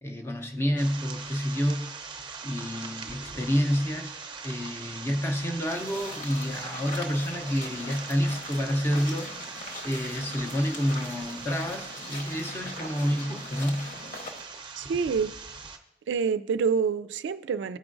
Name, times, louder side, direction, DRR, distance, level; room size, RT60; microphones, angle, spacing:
voice 1, 0.0-1.9 2.4-4.1 4.4-9.3 9.8-13.9, equal, 15° left, 5 dB, 0.6 m, -29 dB
sound 1, 0.8-15.8, right 5 dB, 25° right, 0.6 m, -41 dB
sound 2, 5.6-14.4, left 2 dB, 45° left, 1.1 m, -41 dB
voice 2, 14.8-15.4 16.1-17.8, right 6 dB, 75° right, 11 dB, 0.3 m, -27 dB
14.0 x 4.8 x 2.5 m, 0.87 s
head